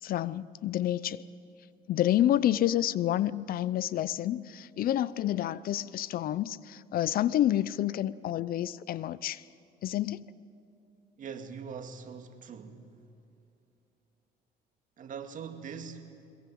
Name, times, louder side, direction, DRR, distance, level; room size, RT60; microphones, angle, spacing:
voice 1, 0.0-1.2 1.9-9.4 9.8-10.3, left 12 dB, 60° left, 0.6 m, -29 dB
voice 2, 11.2-12.9 15.0-16.3, right 6 dB, 50° right, 2.1 m, -42 dB
22.0 x 21.5 x 8.6 m
cardioid pair, 110°, 17 cm